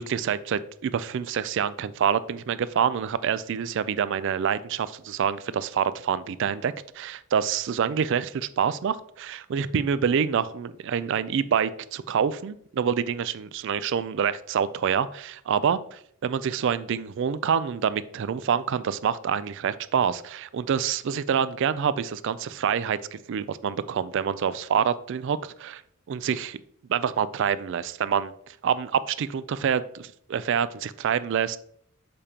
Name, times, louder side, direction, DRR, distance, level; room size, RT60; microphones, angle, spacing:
voice 1, 0.0-15.8 16.2-25.8 26.1-26.6 26.9-31.6, right 7 dB, 55° right, 15 dB, 0.3 m, -26 dB
6.8 x 5.1 x 2.9 m, 0.66 s
head